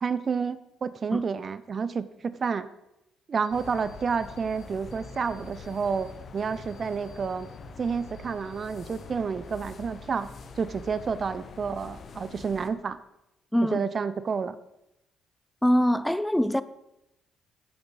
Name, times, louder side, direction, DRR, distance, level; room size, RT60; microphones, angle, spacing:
voice 1, 0.0-2.7 3.3-7.5 7.8-10.3 10.6-13.0 13.7-14.6, right 5 dB, 45° right, 0.6 m, -30 dB
sound 1, 3.4-4.6 4.9-6.1 6.4-9.0 9.3-10.5 10.8-11.4, left 4 dB, 65° left, 4.8 m, -61 dB
sound 2, 3.5-12.7, left 4 dB, 50° left, 1.0 m, -44 dB
voice 2, 15.6-16.6, equal, 5° left, 0.6 m, -23 dB
15.0 x 8.4 x 4.0 m
hypercardioid pair, 45°, 0 cm